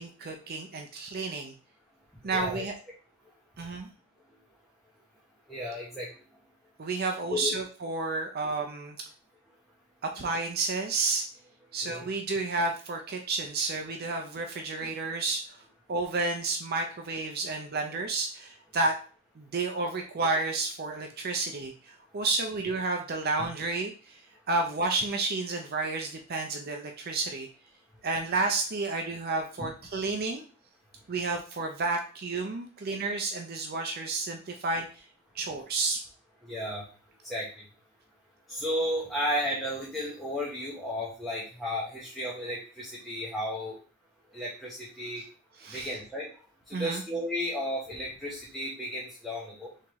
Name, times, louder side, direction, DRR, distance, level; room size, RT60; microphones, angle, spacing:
voice 1, 0.0-1.5 2.2-2.8 3.6-3.9 6.8-9.0 10.1-11.2 11.7-15.6 15.9-19.0 19.4-24.2 24.5-27.5 28.0-30.4 31.1-35.0 35.3-36.0 45.6-45.9 46.7-47.0, right 3 dB, 50° right, 3 dB, 0.5 m, -31 dB
voice 2, 2.2-2.7 5.5-6.1 7.3-7.5 11.8-12.1 36.4-36.9 37.2-37.5 38.5-43.8 44.3-45.2 45.7-46.3 46.7-49.7, equal, ahead, -6 dB, 1.0 m, -33 dB
4.6 x 3.5 x 3.0 m, 0.38 s
head